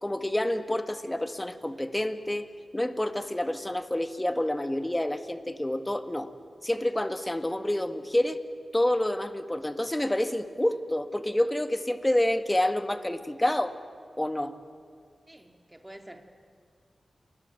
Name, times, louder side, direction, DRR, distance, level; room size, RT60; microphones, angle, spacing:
voice 1, 0.0-2.5 2.7-6.3 6.6-8.4 8.7-13.8 14.2-14.5, left 1 dB, 15° left, 9 dB, 1.7 m, -28 dB
voice 2, 15.3-16.3, right 1 dB, 10° right, 5 dB, 2.9 m, -48 dB
29.0 x 21.5 x 9.1 m, 2.1 s
cardioid pair, 60°, 0 cm